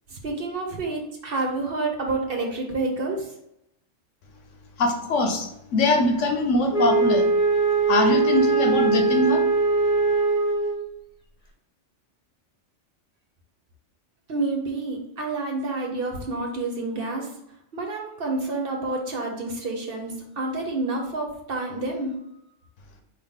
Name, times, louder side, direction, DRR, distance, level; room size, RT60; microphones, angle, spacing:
voice 1, 0.2-3.2 14.3-17.3 17.7-22.1, right 3 dB, 55° right, 1 dB, 1.0 m, -28 dB
voice 2, 4.8-7.3 7.9-9.4, left 2 dB, 85° left, 4 dB, 1.2 m, -22 dB
Wind instrument woodwind instrument, 6.7-10.9, right 4 dB, 30° left, 0.9 m, -21 dB
4.7 x 2.9 x 3.7 m, 0.79 s
omnidirectional pair, 1.2 m